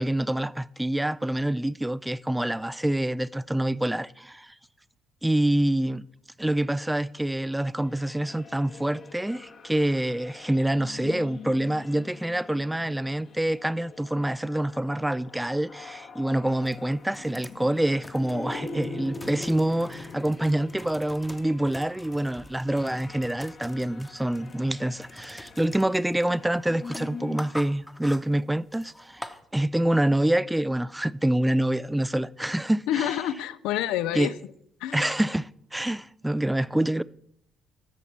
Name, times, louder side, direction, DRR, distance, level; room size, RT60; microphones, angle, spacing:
voice 1, 0.0-4.5 5.2-6.0 6.4-29.2 29.5-33.1 34.1-34.3 34.9-37.0, right 1 dB, 10° right, 0.3 m, -26 dB
sound 1, 7.7-27.6, left 4 dB, 45° left, 1.0 m, -44 dB
sound 2, 16.6-29.4, left 1 dB, 10° left, 0.9 m, -46 dB
voice 2, 32.9-34.3 34.8-35.1, left 12 dB, 65° left, 0.4 m, -28 dB
11.5 x 7.0 x 4.5 m
figure-of-eight pair, 45°, 0 cm